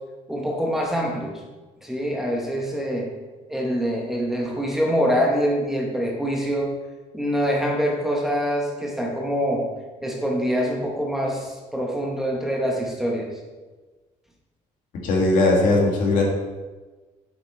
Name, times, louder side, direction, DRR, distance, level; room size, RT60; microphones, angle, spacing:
voice 1, 0.3-1.4 1.8-3.1 3.5-6.7 7.1-9.6 10.0-13.3, equal, 5° right, -1 dB, 0.9 m, -25 dB
voice 2, 15.0-16.2, left 2 dB, 80° left, -1 dB, 1.8 m, -19 dB
7.4 x 5.1 x 4.3 m, 1.3 s
cardioid pair, 175°, 14 cm